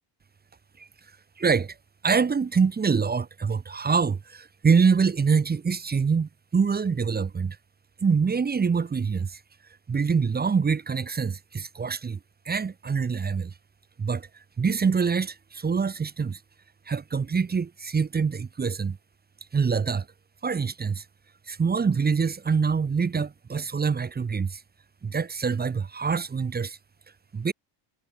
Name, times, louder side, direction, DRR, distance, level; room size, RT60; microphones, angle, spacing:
voice 1, 1.4-1.7 2.0-7.6 8.0-9.4 9.9-12.2 12.4-13.5 14.0-14.3 14.6-16.4 16.9-19.0 19.5-20.1 20.4-21.0 21.5-24.6 25.0-26.8 27.3-27.5, right 5 dB, 20° right, 1.2 m, -25 dB
cardioid pair, 130°, 49 cm